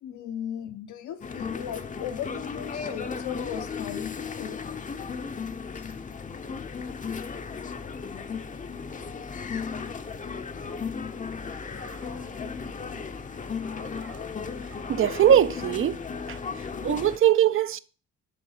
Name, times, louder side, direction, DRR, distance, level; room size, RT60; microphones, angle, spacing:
voice 1, 0.0-4.6 5.7-5.8, left 9 dB, 80° left, 0.9 m, -37 dB
sound 1, 1.2-17.2, left 5 dB, 25° left, 0.6 m, -35 dB
voice 2, 14.9-16.0 16.3-16.4 16.8-17.8, right 10 dB, 45° right, 0.5 m, -21 dB
7.7 x 3.9 x 5.5 m
cardioid pair, 90°, 30 cm